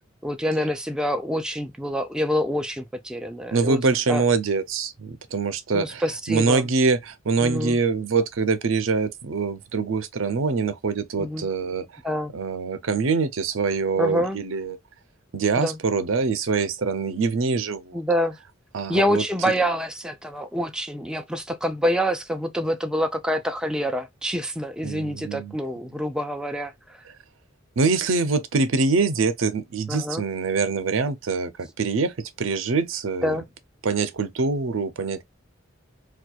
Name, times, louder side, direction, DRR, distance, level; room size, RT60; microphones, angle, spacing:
voice 1, 0.2-4.2 5.7-6.6 7.4-7.8 11.2-11.5 12.0-12.3 14.0-14.4 15.6-15.8 17.9-18.4 18.9-27.0 29.9-30.2 33.2-33.5, equal, 5° right, 0.4 m, -26 dB
voice 2, 3.5-11.9 12.3-14.8 15.3-18.0 18.7-19.2 24.8-25.6 27.8-33.4 33.8-35.2, right 4 dB, 80° right, 0.6 m, -24 dB
4.4 x 2.3 x 2.3 m
head